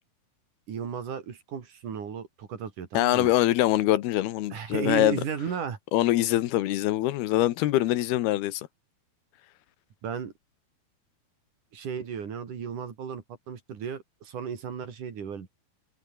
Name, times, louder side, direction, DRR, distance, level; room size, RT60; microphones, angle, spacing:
voice 1, 0.7-3.3 4.5-5.8 10.0-10.3 11.7-15.5, right 7 dB, 55° right, 4.2 m, -34 dB
voice 2, 2.9-5.2 5.9-8.7, left 15 dB, 80° left, 3.0 m, -24 dB
omnidirectional pair, 4.4 m